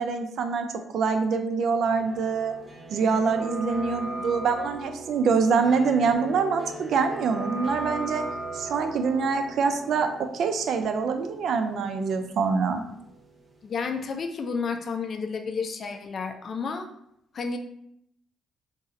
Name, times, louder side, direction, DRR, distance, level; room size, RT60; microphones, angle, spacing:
voice 1, 0.0-2.5 2.9-8.2 8.5-12.8, right 5 dB, 70° right, 7 dB, 0.3 m, -25 dB
sound 1, 2.0-13.8 14.0-14.1, right 2 dB, 20° right, 0.8 m, -38 dB
voice 2, 13.6-16.9 17.3-17.6, left 5 dB, 50° left, 5 dB, 0.4 m, -31 dB
2.6 x 2.4 x 3.9 m, 0.73 s
cardioid pair, 90°, 0 cm